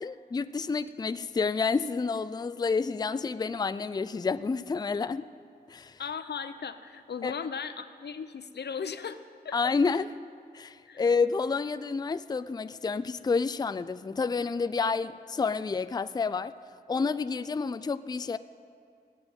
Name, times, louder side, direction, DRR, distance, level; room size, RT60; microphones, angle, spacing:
voice 1, 0.0-5.3 5.7-6.0 7.2-7.3 9.5-10.1 10.5-16.5 16.9-18.4, left 4 dB, 25° left, 0.4 m, -29 dB
voice 2, 6.0-9.5 10.9-11.0, left 6 dB, 85° left, 0.7 m, -37 dB
16.5 x 8.0 x 9.0 m
wide cardioid pair, 85°, 17 cm